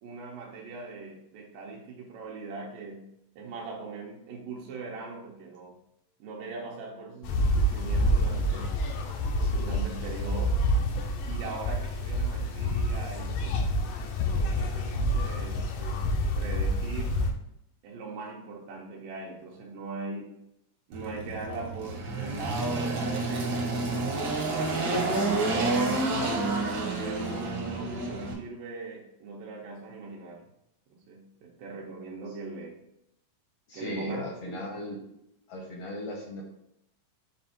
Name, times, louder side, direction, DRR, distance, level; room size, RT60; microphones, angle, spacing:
voice 1, 0.0-5.8 6.2-8.8 9.3-10.6 11.3-13.6 14.3-16.1 16.4-17.3 17.8-20.4 20.9-23.7 24.5-26.1 27.0-30.4 30.9-32.8 33.7-34.6, right 3 dB, 85° right, -2 dB, 2.6 m, -40 dB
sound 1, 7.2-17.3, equal, 85° left, 2.4 m, -28 dB
Engine, 20.9-28.3, right 2 dB, 55° right, 1.2 m, -29 dB
voice 2, 33.7-35.0 35.5-36.4, left 1 dB, 70° left, 0 dB, 1.5 m, -38 dB
7.3 x 2.6 x 5.7 m, 0.80 s
omnidirectional pair, 3.8 m